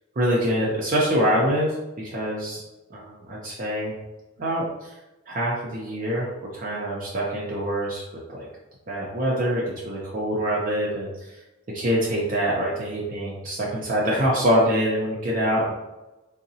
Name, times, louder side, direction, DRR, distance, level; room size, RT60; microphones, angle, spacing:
voice 1, 0.2-1.7 2.0-2.6 2.9-3.9 4.4-4.9 5.3-8.0 8.3-8.5 8.9-11.3 11.7-15.7, equal, 40° right, -4 dB, 0.5 m, -25 dB
3.7 x 2.0 x 2.6 m, 1.0 s
head